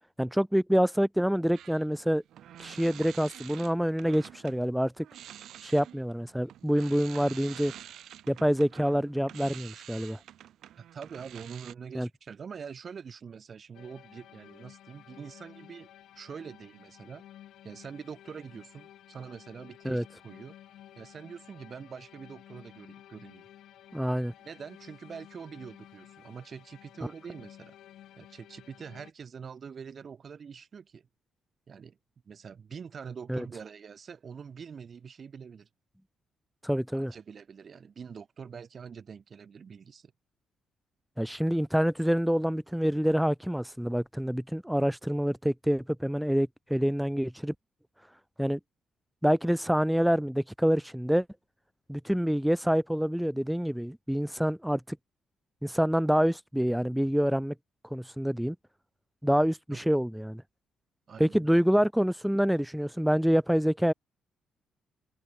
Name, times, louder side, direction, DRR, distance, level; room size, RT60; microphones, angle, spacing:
voice 1, 0.2-2.2 2.6-5.1 5.6-7.7 8.3-10.2 11.9-12.1 19.8-20.0 23.9-24.3 33.3-33.5 36.6-37.1 41.2-47.5 48.4-48.6 49.2-51.3 51.9-55.0 55.6-57.5 57.9-58.6 59.2-60.4 61.2-63.9, equal, ahead, 0.4 m, -26 dB
sound 1, 1.5-4.6 5.0-11.7, right 11 dB, 75° right, 2.8 m, -48 dB
voice 2, 10.8-15.9 16.2-17.2 17.6-20.5 21.0-23.4 24.4-27.7 28.2-31.1 31.7-32.0 32.3-35.7 36.9-40.1 59.7-59.8 61.1-61.6, right 6 dB, 45° right, 0.8 m, -44 dB
sound 2, 13.7-29.1, left 12 dB, 75° left, 1.8 m, -53 dB
cardioid pair, 90°, 0 cm